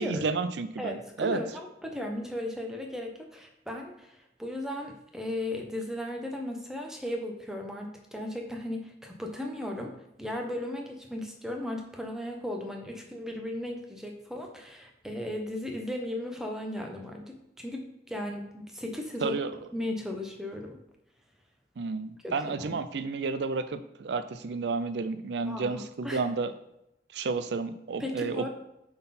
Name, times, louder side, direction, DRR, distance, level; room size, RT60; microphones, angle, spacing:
voice 1, 0.0-1.4 19.2-19.5 21.8-26.5 27.1-28.5, right 4 dB, 75° right, 11 dB, 0.4 m, -31 dB
voice 2, 0.8-19.4 19.7-20.8 22.2-22.8 25.4-26.2 28.0-28.5, left 1 dB, 5° right, 1 dB, 0.8 m, -36 dB
7.7 x 3.9 x 4.2 m, 0.85 s
head